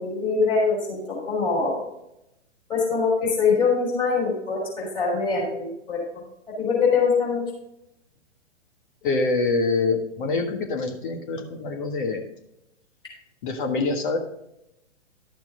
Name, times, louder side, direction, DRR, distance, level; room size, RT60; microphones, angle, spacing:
voice 1, 0.0-1.8 2.7-6.2 6.6-7.4, left 4 dB, 15° left, -4 dB, 3.8 m, -23 dB
voice 2, 9.0-12.2 13.4-14.2, left 3 dB, 45° left, 3 dB, 1.5 m, -25 dB
11.5 x 6.9 x 3.7 m, 0.85 s
figure-of-eight pair, 120°, 36 cm